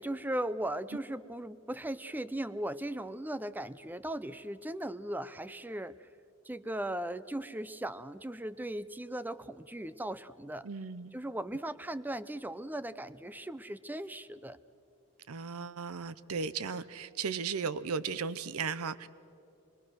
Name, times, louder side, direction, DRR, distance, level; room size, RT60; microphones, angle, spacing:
voice 1, 0.0-6.1 6.4-10.7 11.1-14.6, right 1 dB, 10° right, 15 dB, 0.5 m, -38 dB
voice 2, 10.6-11.2 15.3-19.1, right 5 dB, 85° right, 16 dB, 0.7 m, -36 dB
25.5 x 22.5 x 6.3 m, 2.6 s
head